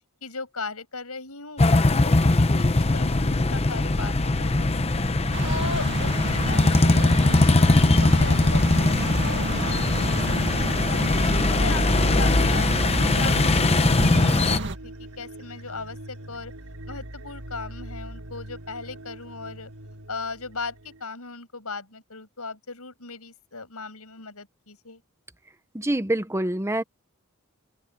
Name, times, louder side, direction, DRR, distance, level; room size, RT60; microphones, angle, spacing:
voice 1, 0.2-4.8 5.4-7.1 7.4-11.1 11.5-13.5 13.9-16.5 16.9-19.7 20.1-25.0, left 4 dB, 80° left, 7.1 m, -37 dB
sound 1, 1.6-14.6, left 2 dB, 30° left, 0.8 m, -21 dB
sound 2, 4.1-21.0, right 1 dB, 85° right, 4.2 m, -40 dB
sound 3, 5.3-14.7, right 2 dB, 55° right, 2.0 m, -30 dB
voice 2, 25.7-26.8, right 1 dB, 10° right, 1.1 m, -25 dB
open air
head